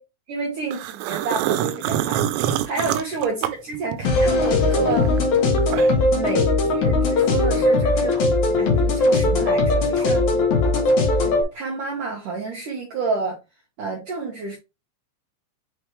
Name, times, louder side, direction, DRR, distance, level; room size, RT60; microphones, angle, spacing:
voice 1, 0.3-5.2 6.1-8.2 8.5-10.3 11.1-13.4 13.8-14.6, right 4 dB, 70° right, 1.9 m, -29 dB
sound 1, 0.7-4.3 4.6-6.1, right 11 dB, 85° right, 3.3 m, -26 dB
sound 2, 4.0-11.4, left 2 dB, 70° left, 1.8 m, -19 dB
9.1 x 3.2 x 3.2 m
omnidirectional pair, 5.9 m